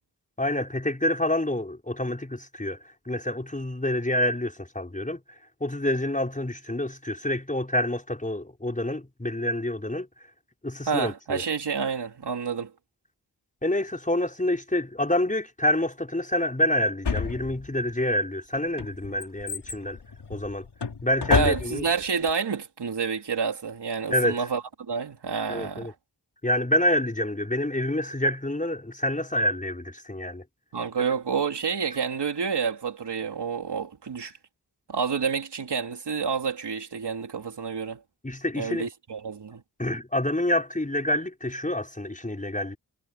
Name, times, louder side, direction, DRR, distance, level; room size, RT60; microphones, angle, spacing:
voice 1, 0.4-5.2 5.6-10.1 10.6-11.4 13.6-20.0 20.3-20.7 21.0-21.8 24.1-24.5 25.5-25.9 26.4-30.4 38.2-38.9 39.8-42.8, left 1 dB, 20° left, 5.5 m, -27 dB
voice 2, 10.8-12.7 21.3-25.9 30.7-34.3 34.9-38.0 38.5-39.6, right 6 dB, 85° right, 3.5 m, -29 dB
Drawer open or close, 17.0-17.9 18.5-22.0 22.3-22.4, left 5 dB, 80° left, 5.3 m, -30 dB
wide cardioid pair, 70°, 40 cm